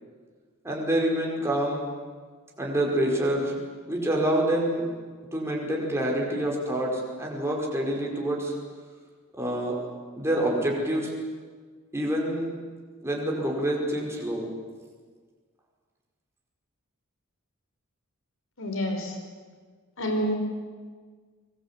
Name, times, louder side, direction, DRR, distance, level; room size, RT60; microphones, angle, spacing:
voice 1, 0.6-1.9 2.6-3.6 3.9-4.9 5.3-8.5 9.3-9.9 10.2-11.1 11.9-12.5 13.0-14.5, right 1 dB, 10° right, -2 dB, 5.2 m, -27 dB
voice 2, 18.6-19.1 20.0-20.3, equal, 60° left, 4 dB, 5.2 m, -28 dB
24.0 x 21.0 x 8.5 m, 1.5 s
head